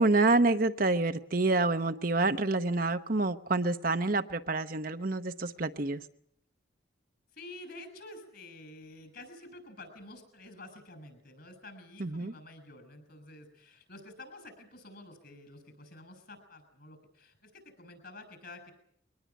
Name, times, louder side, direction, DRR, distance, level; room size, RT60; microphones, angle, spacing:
voice 1, 0.0-6.0 12.0-12.3, right 3 dB, 45° right, 0.9 m, -27 dB
voice 2, 7.3-18.7, left 2 dB, 50° left, 6.7 m, -49 dB
23.5 x 19.5 x 8.4 m
head